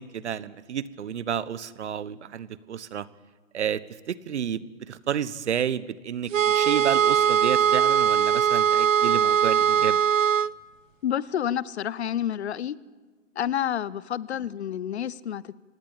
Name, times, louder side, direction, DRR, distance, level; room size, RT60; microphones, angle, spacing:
voice 1, 0.0-3.1 3.5-3.8 4.1-10.0, right 9 dB, 60° right, 17 dB, 1.2 m, -30 dB
sound 1, 6.3-10.5, right 8 dB, 80° right, 0.7 m, -21 dB
voice 2, 11.0-12.8 13.4-15.5, left 10 dB, 55° left, 20 dB, 1.0 m, -29 dB
26.0 x 19.0 x 9.0 m, 1.3 s
hypercardioid pair, 150°, 38 cm